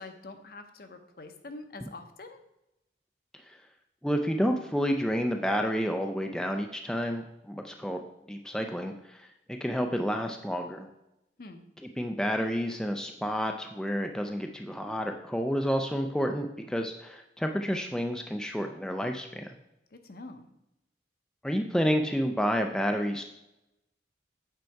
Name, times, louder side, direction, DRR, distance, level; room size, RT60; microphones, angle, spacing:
voice 1, 0.0-2.4 11.4-11.6 19.9-20.4, left 3 dB, 55° left, 7 dB, 0.7 m, -45 dB
voice 2, 4.0-8.0 8.3-9.3 9.6-10.9 12.0-19.5 21.4-23.2, equal, 5° left, 3 dB, 0.3 m, -30 dB
7.7 x 4.6 x 4.5 m, 0.88 s
head